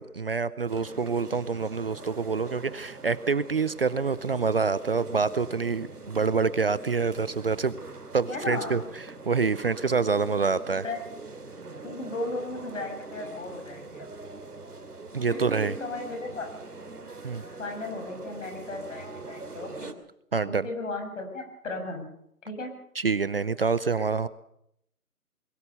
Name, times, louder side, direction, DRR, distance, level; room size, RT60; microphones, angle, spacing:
voice 1, 0.0-7.7 8.1-8.8 9.3-10.8 15.1-15.8 17.2-17.4 20.3-20.7 23.0-24.3, right 5 dB, 40° right, 17 dB, 0.7 m, -26 dB
sound 1, 0.7-19.9, right 3 dB, 85° right, 2.8 m, -43 dB
voice 2, 8.3-8.8 10.8-11.0 11.8-14.1 15.3-16.5 17.6-19.9 20.4-22.1 22.4-22.7, left 2 dB, 55° left, 4 dB, 7.0 m, -36 dB
22.0 x 18.0 x 7.0 m, 0.74 s
figure-of-eight pair, 155°, 45 cm